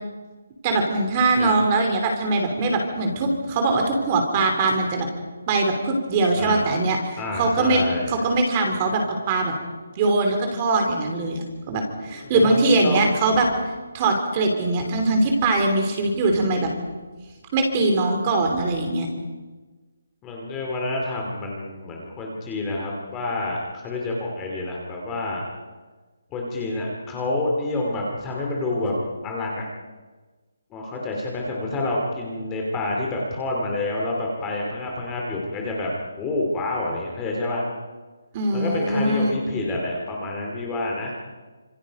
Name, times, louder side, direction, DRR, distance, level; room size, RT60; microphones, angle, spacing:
voice 1, 0.6-5.1 5.5-9.5 9.9-13.5 13.9-16.7 17.5-19.1 38.3-39.3, right 2 dB, 15° right, 3 dB, 3.1 m, -22 dB
voice 2, 6.3-6.8 7.2-8.1 12.1-13.1 20.2-25.4 26.3-29.0 29.2-29.6 30.7-35.9 36.2-37.7 38.5-41.1, left 2 dB, 10° left, -2 dB, 2.5 m, -28 dB
28.0 x 26.5 x 5.2 m, 1.3 s
hypercardioid pair, 180°, 0 cm